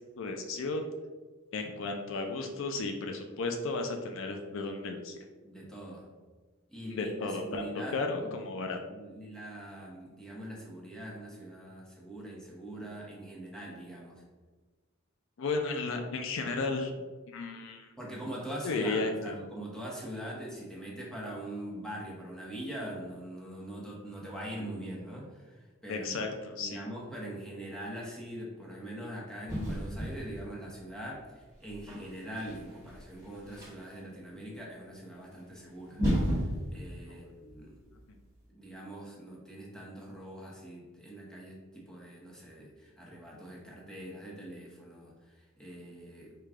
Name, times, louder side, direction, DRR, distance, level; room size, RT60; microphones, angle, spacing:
voice 1, 0.2-0.9 1.5-5.2 7.0-8.8 15.4-16.9 17.3-17.9 18.6-19.3 25.9-26.8 37.1-37.2 38.1-38.2, left 3 dB, 65° left, 4 dB, 0.4 m, -34 dB
voice 2, 5.4-6.1 6.7-8.4 8.9-14.2 18.0-26.3 26.5-36.0 36.7-37.8 38.5-46.4, right 1 dB, 5° left, -4 dB, 0.8 m, -42 dB
sound 1, 29.5-30.7 31.5-34.0 35.4-35.5 35.9-38.0, equal, 15° right, 1.3 m, -34 dB
4.9 x 2.3 x 3.5 m, 1.3 s
head